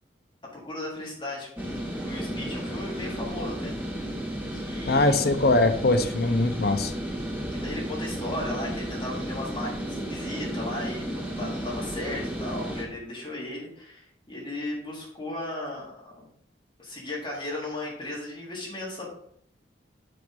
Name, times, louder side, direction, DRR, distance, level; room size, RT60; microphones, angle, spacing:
voice 1, 0.5-3.7 4.5-5.2 7.5-16.3 16.8-19.1, left 1 dB, 25° left, -5 dB, 3.8 m, -36 dB
sound 1, 1.6-12.8, equal, 10° right, 1.7 m, -33 dB
voice 2, 4.9-6.9, left 2 dB, 60° left, 8 dB, 0.8 m, -22 dB
9.2 x 5.2 x 5.4 m, 0.67 s
head